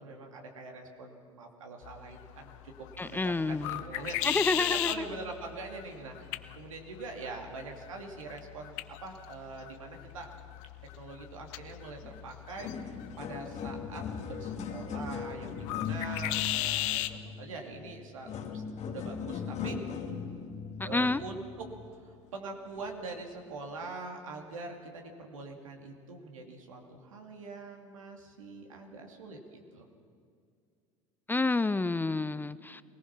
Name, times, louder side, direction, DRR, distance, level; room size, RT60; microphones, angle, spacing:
voice 1, 0.0-6.2 6.5-10.3 11.0-19.8 20.8-21.7 22.1-29.9, right 3 dB, 80° right, 2 dB, 2.6 m, -44 dB
sound 1, 1.8-17.2, left 16 dB, 65° left, 0.8 m, -38 dB
voice 2, 3.0-3.8 4.2-5.1 20.8-21.2 31.3-32.8, left 3 dB, 10° left, 16 dB, 0.5 m, -29 dB
sound 2, 12.0-12.2 12.4-22.1 22.8-22.9 23.7-23.8, left 6 dB, 45° left, 2.3 m, -39 dB
23.5 x 18.5 x 6.0 m, 2.4 s
hypercardioid pair, 75°, 17 cm